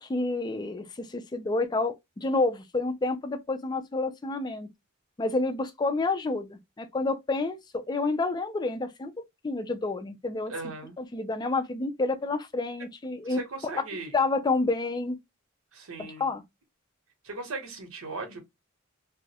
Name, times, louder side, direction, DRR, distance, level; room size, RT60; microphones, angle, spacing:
voice 1, 0.0-1.9 2.2-4.7 5.2-9.1 9.4-10.5 11.0-13.4 14.1-15.2 16.2-16.4, left 3 dB, 20° left, 0.3 m, -29 dB
voice 2, 10.5-11.0 13.2-14.1 15.7-16.3 17.2-18.4, right 3 dB, 85° right, 0.9 m, -38 dB
2.3 x 2.0 x 2.7 m
head